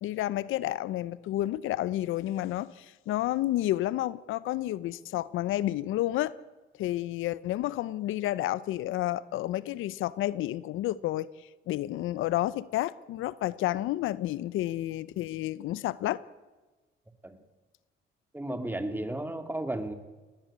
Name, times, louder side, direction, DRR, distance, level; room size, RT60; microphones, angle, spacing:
voice 1, 0.0-6.3 6.8-11.3 11.7-16.2, left 14 dB, 85° left, 0.7 m, -30 dB
voice 2, 18.3-19.9, right 1 dB, 10° right, 2.5 m, -33 dB
19.0 x 19.0 x 8.7 m
cardioid pair, 90°, 20 cm